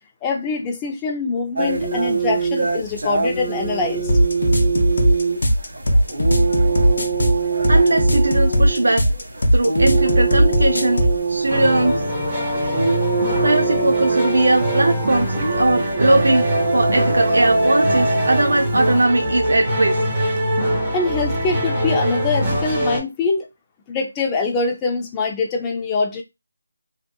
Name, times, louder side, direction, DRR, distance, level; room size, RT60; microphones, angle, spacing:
voice 1, 0.2-4.1 20.9-23.5 23.9-26.2, left 4 dB, 15° left, 0.4 m, -24 dB
sound 1, 1.6-19.0, right 4 dB, 55° right, 1.1 m, -23 dB
sound 2, 4.1-11.2, equal, 60° left, 0.6 m, -17 dB
voice 2, 7.7-9.1 9.5-11.9 13.4-16.5 16.7-19.9, right 2 dB, 70° right, 0.4 m, -19 dB
sound 3, 11.5-23.0, equal, 20° right, 1.0 m, -23 dB
2.7 x 2.4 x 2.2 m
figure-of-eight pair, 165°, 0 cm